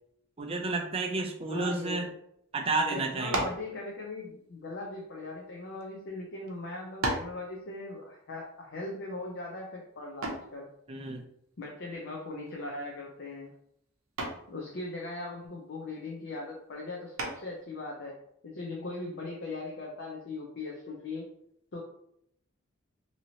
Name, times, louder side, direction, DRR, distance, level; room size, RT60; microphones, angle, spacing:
voice 1, 0.4-2.1 2.5-3.4 10.9-11.2, right 3 dB, 30° right, 3 dB, 0.4 m, -31 dB
voice 2, 1.5-2.1 2.9-10.7 11.6-13.5 14.5-18.2 18.4-21.3 21.7-21.8, left 2 dB, 55° left, -1 dB, 0.5 m, -39 dB
sound 1, 3.3-3.7 4.6-5.8 6.5-6.6 7.0-7.4 10.2-10.6 12.5-12.8 13.2-13.6 14.2-14.5 17.2-17.6, right 2 dB, 80° right, 0.6 m, -34 dB
2.8 x 2.8 x 2.7 m, 0.74 s
head